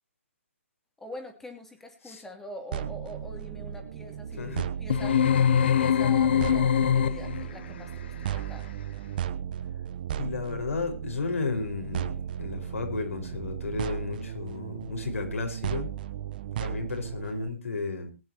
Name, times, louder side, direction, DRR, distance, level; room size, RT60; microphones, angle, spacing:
voice 1, 1.0-4.5 4.8-8.7, left 1 dB, 5° left, 4 dB, 2.9 m, -44 dB
sound 1, 2.7-17.5, right 10 dB, 40° right, 1.0 m, -35 dB
voice 2, 4.4-4.7 10.2-15.9 16.6-18.1, left 4 dB, 80° left, 5 dB, 5.2 m, -33 dB
sound 2, 4.9-7.5, left 8 dB, 50° left, 0.8 m, -23 dB
21.5 x 10.0 x 3.0 m, 0.28 s
hypercardioid pair, 150°, 7 cm